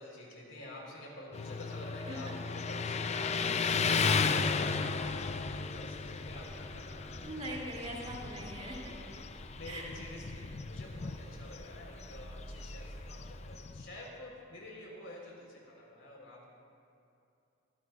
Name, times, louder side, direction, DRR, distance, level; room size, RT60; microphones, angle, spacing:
voice 1, 0.0-7.4 7.8-8.1 9.3-16.5, left 1 dB, 70° left, -2 dB, 3.8 m, -49 dB
Motorcycle, 1.3-14.0, left 5 dB, 35° left, 0.4 m, -35 dB
voice 2, 2.1-2.4 7.2-9.0 9.7-9.9, right 1 dB, 35° right, -3 dB, 2.7 m, -41 dB
sound 1, 4.9-13.0, equal, 50° right, 1.6 m, -50 dB
22.5 x 15.0 x 2.4 m, 2.6 s
head